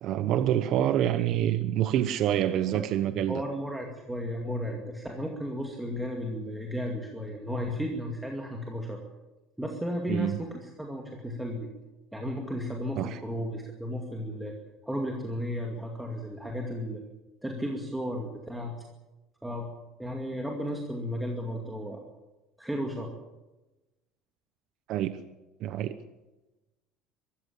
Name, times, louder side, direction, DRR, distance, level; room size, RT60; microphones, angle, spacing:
voice 1, 0.0-3.4 10.1-10.3 13.0-13.2 24.9-25.2 25.6-26.0, right 11 dB, 50° right, 11 dB, 1.0 m, -26 dB
voice 2, 3.1-9.0 9.6-11.7 12.1-14.5 14.8-17.0 17.4-18.8 19.4-19.7 20.0-22.1 22.6-23.1, equal, 5° right, 1 dB, 2.3 m, -34 dB
23.5 x 14.0 x 8.5 m, 1.1 s
cardioid pair, 165°, 0 cm